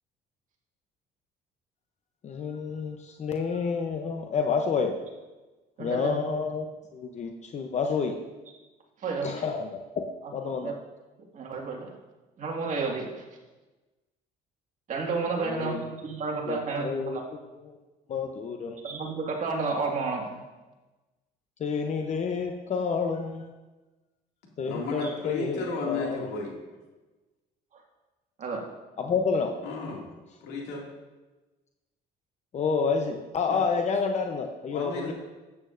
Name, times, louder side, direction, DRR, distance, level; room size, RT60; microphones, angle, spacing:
voice 1, 2.2-4.9 5.8-6.7 6.9-8.2 9.2-10.0 10.3-10.7 15.4-15.8 16.5-17.2 18.1-18.8 21.6-23.5 24.6-26.3 29.0-29.5 32.5-35.1, left 5 dB, 45° left, 4 dB, 0.7 m, -29 dB
voice 2, 5.8-6.2 9.0-9.3 10.2-10.7 11.3-11.9 12.4-13.1 14.9-17.2 18.8-20.4 25.0-25.1 27.7-27.8 28.4-28.7, right 4 dB, 50° right, 0 dB, 1.9 m, -31 dB
voice 3, 24.7-26.5 29.6-30.1 30.4-30.8 33.5-33.6 34.7-35.1, left 3 dB, 90° left, -1 dB, 2.3 m, -33 dB
12.5 x 8.7 x 2.6 m, 1.2 s
cardioid pair, 110°, 17 cm